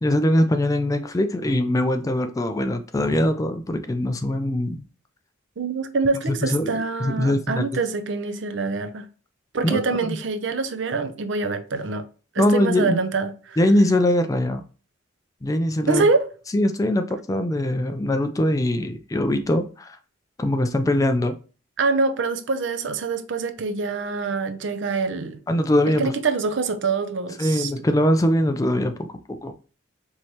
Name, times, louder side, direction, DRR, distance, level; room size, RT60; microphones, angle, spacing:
voice 1, 0.0-4.9 6.3-6.7 7.0-7.7 9.6-10.2 12.4-13.0 13.6-14.6 15.4-16.0 16.5-20.0 20.4-21.3 25.5-26.1 27.4-29.5, left 1 dB, 15° left, 0.3 m, -22 dB
voice 2, 5.6-9.0 9.5-12.0 12.3-13.6 15.9-16.3 21.8-25.4 26.0-27.7, right 4 dB, 65° right, 0.5 m, -25 dB
4.6 x 3.1 x 2.8 m
head